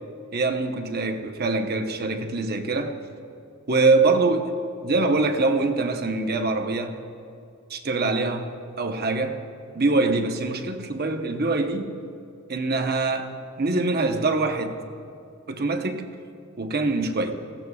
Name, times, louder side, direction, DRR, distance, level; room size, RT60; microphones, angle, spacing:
voice 1, 0.3-3.0 3.7-4.5 4.8-7.0 7.7-8.5 8.8-9.4 9.7-11.9 12.5-14.8 15.5-16.0 16.6-17.3, right 3 dB, 50° right, 6 dB, 0.9 m, -24 dB
19.0 x 15.5 x 2.4 m, 2.5 s
head